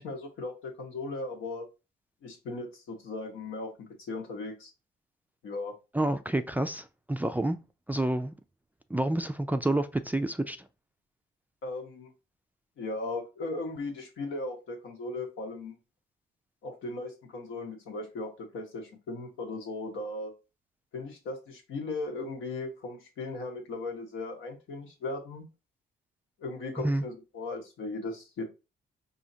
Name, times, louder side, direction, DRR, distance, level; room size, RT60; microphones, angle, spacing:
voice 1, 0.0-1.7 2.2-3.7 4.1-4.7 5.4-5.7 11.6-12.1 12.8-15.7 16.6-20.3 20.9-25.4 26.4-28.4, left 2 dB, 80° left, 1.2 m, -37 dB
voice 2, 5.9-7.6 7.9-8.3 8.9-10.6 26.8-27.0, right 1 dB, 10° right, 0.3 m, -28 dB
4.9 x 2.8 x 2.7 m
cardioid pair, 90°, 20 cm